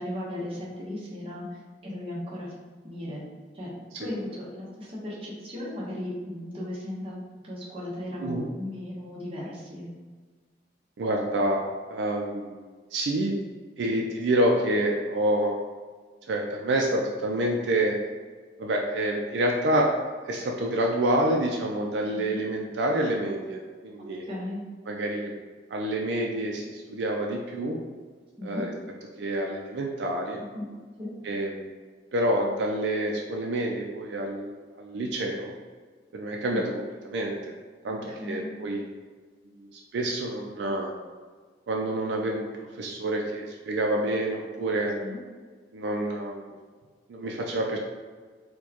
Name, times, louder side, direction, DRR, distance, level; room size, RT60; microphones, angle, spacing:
voice 1, 0.0-2.5 2.8-3.2 3.5-3.7 3.9-9.9 13.8-14.1 22.1-22.4 24.0-24.6 28.4-28.7 30.5-30.7 31.0-31.1 36.5-36.7 37.8-38.6 45.0-45.2, left 1 dB, 30° right, -6 dB, 0.9 m, -36 dB
voice 2, 11.0-11.6 11.9-12.6 12.9-13.4 13.8-15.6 16.3-18.0 18.6-19.9 20.3-24.3 24.9-25.3 25.7-27.8 28.4-28.7 29.2-30.4 31.2-31.8 32.1-35.5 36.1-36.8 37.0-37.5 37.8-38.8 39.6-40.9 41.7-45.0 45.7-46.5 47.1-47.8, right 1 dB, 80° right, 0 dB, 0.4 m, -28 dB
4.4 x 2.2 x 2.8 m, 1.5 s
head